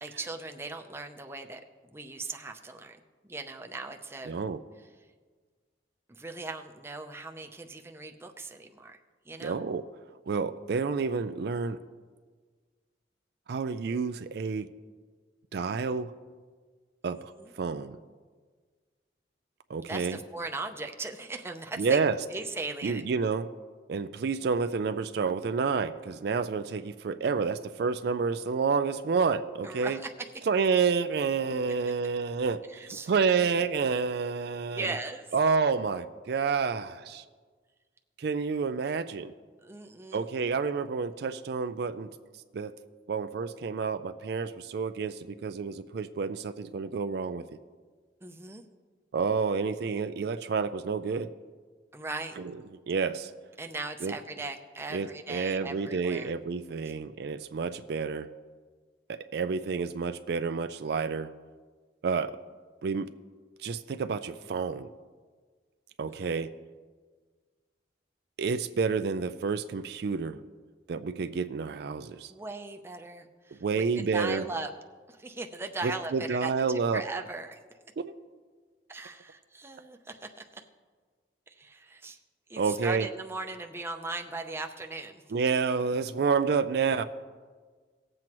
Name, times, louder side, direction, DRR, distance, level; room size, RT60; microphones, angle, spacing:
voice 1, 0.0-4.4 6.1-9.0 9.3-9.6 17.1-17.5 19.9-22.0 22.3-23.1 29.6-30.5 32.7-33.1 34.7-35.3 39.6-40.3 48.2-48.6 51.9-52.4 53.6-56.3 66.1-66.3 72.3-74.7 75.1-77.6 78.9-80.6 81.5-82.2 82.5-85.2, right 3 dB, 15° right, 4 dB, 0.6 m, -39 dB
voice 2, 4.3-4.6 9.4-9.8 10.3-11.8 13.5-14.7 15.5-16.1 17.0-18.0 19.7-20.2 21.8-22.2 22.8-23.5 23.9-30.0 30.5-32.6 33.1-35.0 35.3-37.2 38.2-39.3 40.1-42.1 42.5-42.7 43.1-47.4 49.1-51.3 52.4-52.5 52.9-53.3 54.0-54.1 54.9-58.3 59.1-61.3 62.0-62.4 62.8-63.1 63.6-64.9 66.0-66.5 68.4-70.4 70.9-72.3 73.6-74.4 75.8-77.0 78.0-78.1 82.6-83.1 85.3-87.0, right 5 dB, 60° right, 10 dB, 0.4 m, -29 dB
18.5 x 7.6 x 3.0 m, 1.5 s
head